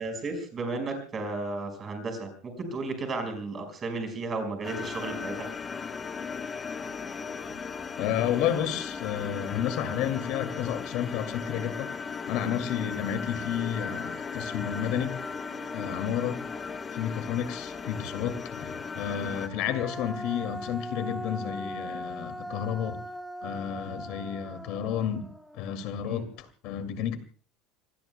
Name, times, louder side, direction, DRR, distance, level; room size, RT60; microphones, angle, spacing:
voice 1, 0.0-5.5 6.8-6.9 26.0-26.2, right 3 dB, 20° right, 5 dB, 5.1 m, -34 dB
sound 1, 4.6-19.5, left 5 dB, 20° left, 1.2 m, -37 dB
voice 2, 8.0-11.9 12.3-15.2 15.7-16.4 16.9-23.0 23.4-25.3 25.5-27.2, left 9 dB, 55° left, 10 dB, 2.3 m, -31 dB
Human voice, 13.4-13.5 13.8-17.5 19.1-26.4, equal, ahead, 1.0 m, -41 dB
28.0 x 20.5 x 2.2 m, 0.39 s
cardioid pair, 170°, 0 cm